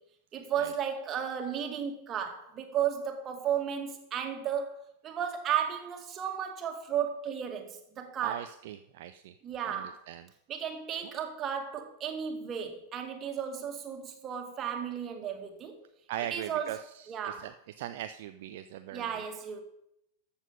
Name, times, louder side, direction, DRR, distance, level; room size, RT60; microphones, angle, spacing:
voice 1, 0.3-8.5 9.4-10.0 10.5-15.8 16.3-17.5 18.9-19.6, right 8 dB, 30° right, 2.1 m, -34 dB
voice 2, 8.2-9.3 9.7-10.2 16.1-16.8 17.2-17.5 17.8-19.1, right 12 dB, 50° right, 0.4 m, -39 dB
13.5 x 7.3 x 5.3 m
figure-of-eight pair, 90°, 0 cm